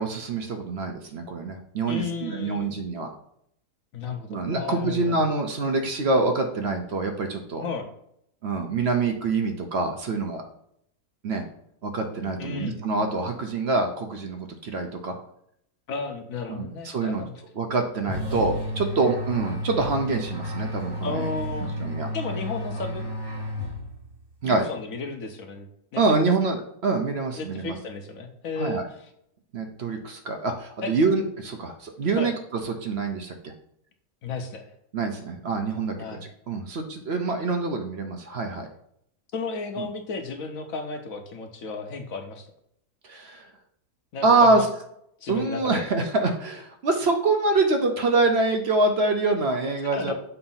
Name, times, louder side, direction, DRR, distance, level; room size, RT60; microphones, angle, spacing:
voice 1, 0.0-3.1 4.3-7.6 8.4-10.4 11.2-11.4 11.8-15.1 16.5-17.2 17.6-21.3 21.8-22.1 24.4-24.6 26.0-27.8 28.6-28.8 29.5-32.3 32.6-33.5 34.9-36.2 36.5-38.7 39.8-39.9 43.1-43.4 44.2-44.7 45.3-50.1, right 3 dB, 55° right, 4 dB, 0.7 m, -25 dB
voice 2, 1.9-2.8 3.9-5.2 7.6-7.9 12.4-12.8 15.9-17.3 21.0-21.7 22.1-23.0 24.4-25.7 25.9-26.2 27.3-29.1 30.8-30.9 32.1-32.3 34.2-34.7 36.0-36.2 39.3-42.5 44.1-44.6 45.2-45.8 49.9-50.1, left 4 dB, 65° left, 5 dB, 1.1 m, -33 dB
sound 1, 18.1-24.2, equal, 25° right, 0.6 m, -32 dB
6.9 x 2.6 x 5.5 m, 0.73 s
omnidirectional pair, 1.7 m